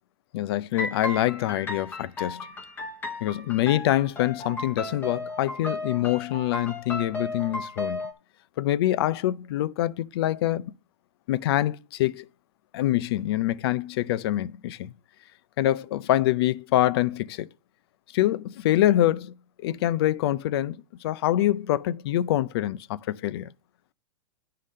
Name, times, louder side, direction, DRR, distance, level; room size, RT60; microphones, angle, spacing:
voice 1, 0.3-2.5 3.2-8.0 8.6-10.7 11.3-12.3 12.7-14.9 15.6-17.5 18.1-19.3 19.6-23.5, left 14 dB, 50° left, 0.4 m, -25 dB
sound 1, 0.7-8.1, left 2 dB, 10° left, 0.9 m, -35 dB
9.8 x 3.8 x 6.4 m
supercardioid pair, 155°, 16 cm